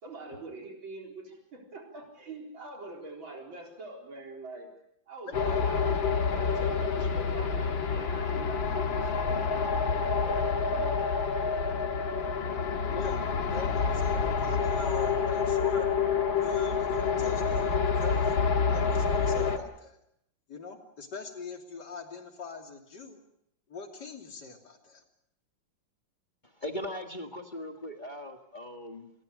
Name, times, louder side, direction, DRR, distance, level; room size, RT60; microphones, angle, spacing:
voice 1, 0.0-4.7 5.1-11.1, right 2 dB, 85° right, 1 dB, 4.8 m, -44 dB
sound 1, 5.3-19.6, left 5 dB, 85° left, 2.6 m, -28 dB
voice 2, 12.1-12.4 12.7-13.2 13.5-15.9 16.4-18.3 18.7-20.0 20.5-23.2 23.7-25.0, left 3 dB, 60° left, 3 dB, 3.6 m, -42 dB
voice 3, 26.4-29.1, left 1 dB, 25° left, 3 dB, 1.8 m, -39 dB
27.5 x 21.5 x 6.6 m, 0.76 s
omnidirectional pair, 2.1 m